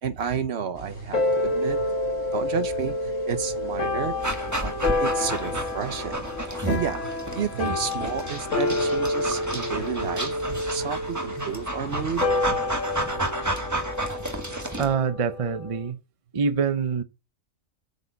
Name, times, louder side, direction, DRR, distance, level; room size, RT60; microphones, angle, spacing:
voice 1, 0.0-1.9 2.3-4.2 4.6-6.3 6.6-12.4, right 7 dB, 60° right, 1.0 m, -31 dB
sound 1, 0.7-12.6, left 3 dB, 60° left, 1.8 m, -46 dB
sound 2, 1.1-15.9, left 2 dB, 80° left, 1.6 m, -29 dB
Dog, 4.2-14.9, right 1 dB, 15° right, 1.3 m, -32 dB
voice 2, 14.8-16.0 16.3-17.0, right 6 dB, 35° right, 0.6 m, -25 dB
8.3 x 6.8 x 5.3 m
omnidirectional pair, 1.3 m